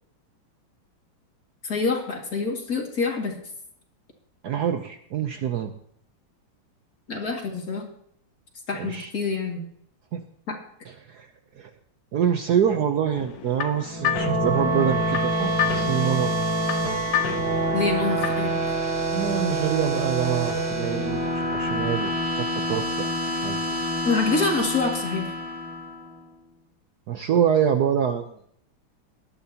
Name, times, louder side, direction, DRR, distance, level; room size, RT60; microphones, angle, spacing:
voice 1, 1.6-3.3 7.1-7.9 8.7-9.6 10.5-10.6 17.7-18.5 24.0-25.3, left 4 dB, 45° left, 1 dB, 2.7 m, -26 dB
voice 2, 4.4-5.7 8.7-9.1 10.1-10.2 10.8-11.3 11.5-11.7 12.1-16.3 16.6-16.8 19.1-22.1 22.4-23.1 23.4-23.6 27.1-28.3, right 9 dB, 65° right, 7 dB, 1.1 m, -25 dB
sound 1, 13.2-18.6, left 10 dB, 65° left, 1.0 m, -31 dB
sound 2, 13.8-26.2, right 1 dB, 85° right, 3.5 m, -26 dB
18.5 x 12.0 x 2.9 m, 0.68 s
omnidirectional pair, 2.2 m